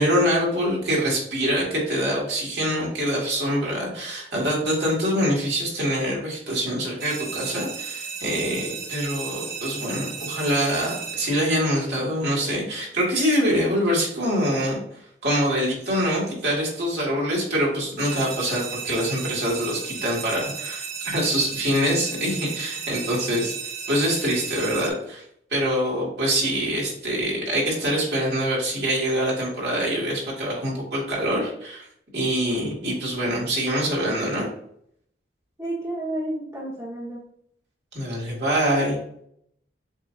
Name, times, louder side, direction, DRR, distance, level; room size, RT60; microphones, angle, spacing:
voice 1, 0.0-23.6 23.9-25.2 25.5-31.9 32.1-34.5 37.9-39.0, equal, 65° right, -4 dB, 1.8 m, -25 dB
sound 1, 7.0-11.9 18.0-24.9, right 5 dB, 50° right, 0.9 m, -34 dB
voice 2, 35.6-37.2, right 1 dB, 15° right, -6 dB, 0.9 m, -31 dB
7.1 x 2.6 x 2.5 m, 0.69 s
head